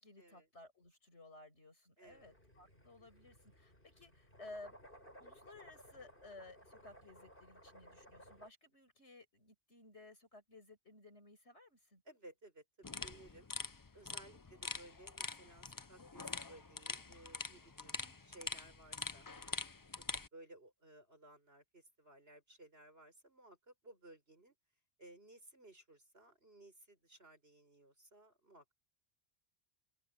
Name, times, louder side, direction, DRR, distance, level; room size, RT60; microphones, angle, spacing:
voice 1, 0.0-4.8 5.2-12.0 17.8-18.2, left 2 dB, 90° left, 6.6 m, -57 dB
voice 2, 2.0-3.3 12.1-13.5 13.9-19.6 20.0-20.1 20.3-24.6 25.0-28.7, right 2 dB, 65° right, 7.4 m, -60 dB
sound 1, 2.1-8.5, equal, 55° left, 8.4 m, -60 dB
sound 2, 12.8-20.3, left 4 dB, 25° left, 0.5 m, -45 dB
open air
omnidirectional pair, 1.1 m